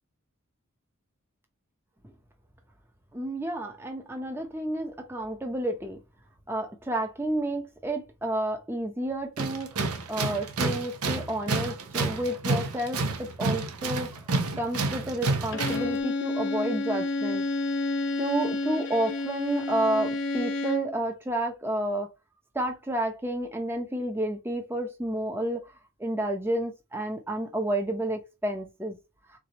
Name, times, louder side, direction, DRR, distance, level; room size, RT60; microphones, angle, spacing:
voice 1, 3.1-6.0 6.5-9.8 10.1-14.1 14.6-17.5 18.2-22.1 22.5-25.6 26.0-29.0, right 1 dB, 10° right, 0.7 m, -30 dB
Tools, 9.4-16.0, right 3 dB, 85° right, 0.8 m, -29 dB
Bowed string instrument, 15.5-21.0, left 2 dB, 55° left, 0.7 m, -30 dB
3.9 x 3.4 x 3.0 m
head